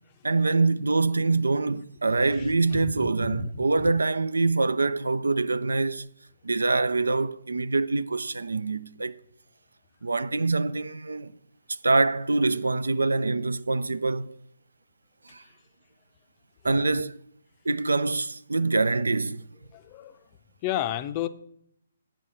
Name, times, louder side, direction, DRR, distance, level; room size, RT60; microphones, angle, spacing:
voice 1, 0.2-6.1 6.4-9.2 10.0-11.3 11.7-14.4 15.3-15.4 16.6-17.2 17.6-19.5, right 3 dB, 80° right, 0.4 m, -25 dB
voice 2, 2.2-2.9 3.2-3.6 15.4-15.5 19.7-20.2 20.6-21.3, left 12 dB, 30° left, 0.5 m, -32 dB
8.8 x 6.2 x 5.7 m
figure-of-eight pair, 135°, 0 cm